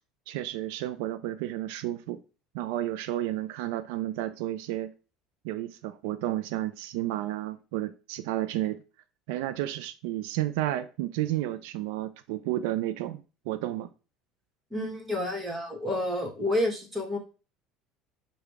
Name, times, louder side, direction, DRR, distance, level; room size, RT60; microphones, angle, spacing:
voice 1, 0.3-2.2 2.5-4.9 5.4-8.8 9.3-13.9, right 14 dB, 80° right, 0.3 m, -32 dB
voice 2, 14.7-17.2, left 1 dB, 15° right, 1.2 m, -29 dB
4.9 x 2.2 x 4.7 m
cardioid pair, 140°, 0 cm